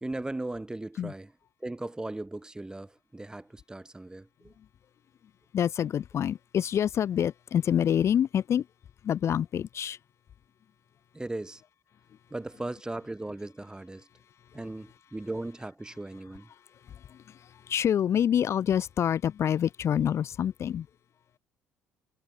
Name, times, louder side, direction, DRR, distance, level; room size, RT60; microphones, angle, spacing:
voice 1, 0.0-1.3 1.6-4.5 11.1-11.6 12.3-14.1 14.5-16.5, right 2 dB, 10° right, 1.8 m, -37 dB
voice 2, 5.5-8.7 9.0-10.0 14.5-14.6 16.5-20.9, left 9 dB, 50° left, 0.6 m, -27 dB
hypercardioid pair, 65°, 6 cm